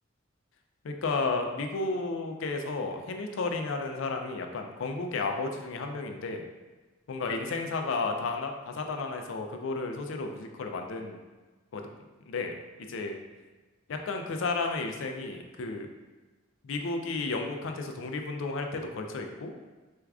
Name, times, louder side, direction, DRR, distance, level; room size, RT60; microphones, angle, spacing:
voice 1, 0.8-6.4 7.1-11.2 11.7-11.8 12.3-12.5 12.9-13.2 13.9-15.9 16.6-19.5, left 3 dB, 70° left, 4 dB, 0.4 m, -32 dB
4.4 x 2.3 x 2.3 m, 1.3 s
head